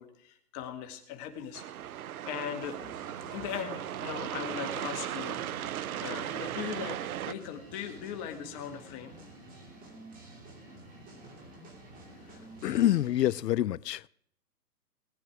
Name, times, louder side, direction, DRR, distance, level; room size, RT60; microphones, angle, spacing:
voice 1, 0.0-2.8 3.3-5.6 6.0-7.0 7.2-9.2, left 8 dB, 25° left, 1.9 m, -39 dB
sound 1, 1.5-7.3, right 11 dB, 65° right, 0.7 m, -37 dB
sound 2, 2.6-13.4, right 1 dB, 15° right, 2.9 m, -50 dB
voice 2, 12.6-14.1, left 13 dB, 90° left, 0.6 m, -26 dB
19.5 x 9.7 x 4.8 m
hypercardioid pair, 150°, 48 cm